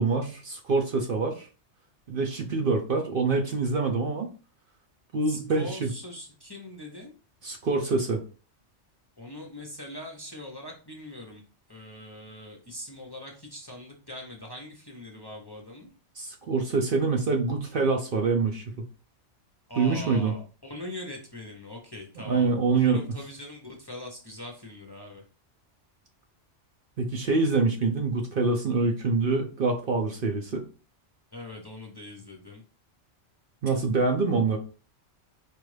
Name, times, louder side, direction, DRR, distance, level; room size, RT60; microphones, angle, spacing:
voice 1, 0.0-1.5 2.1-4.3 5.1-5.9 7.4-8.2 16.2-18.6 19.8-20.3 22.2-23.0 27.0-30.6 33.6-34.6, right 4 dB, 55° right, 2 dB, 0.7 m, -25 dB
voice 2, 5.3-7.1 9.2-11.4 11.7-15.9 19.7-25.2 31.3-32.6, left 1 dB, 25° left, 0 dB, 0.7 m, -42 dB
4.6 x 2.5 x 3.2 m, 0.36 s
omnidirectional pair, 1.2 m